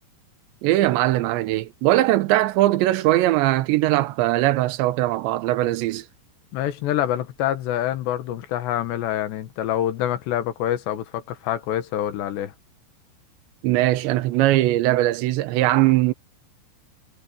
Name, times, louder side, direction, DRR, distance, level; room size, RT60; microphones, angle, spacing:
voice 1, 0.6-6.1 13.6-16.1, right 16 dB, 80° right, 3.2 m, -20 dB
voice 2, 6.5-12.5, left 11 dB, 75° left, 3.6 m, -26 dB
omnidirectional pair, 5.2 m